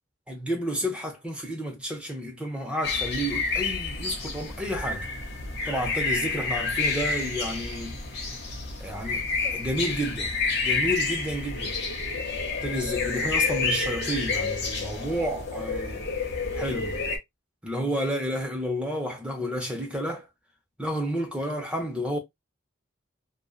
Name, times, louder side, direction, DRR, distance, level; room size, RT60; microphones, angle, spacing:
voice 1, 0.3-5.1 5.7-8.0 8.8-10.3 10.6-11.8 12.6-16.0 16.6-17.0 17.6-20.3 20.8-22.2, equal, 5° right, 0.6 m, -31 dB
sound 1, 2.8-17.2, left 4 dB, 55° left, 0.7 m, -29 dB
2.6 x 2.1 x 2.3 m
head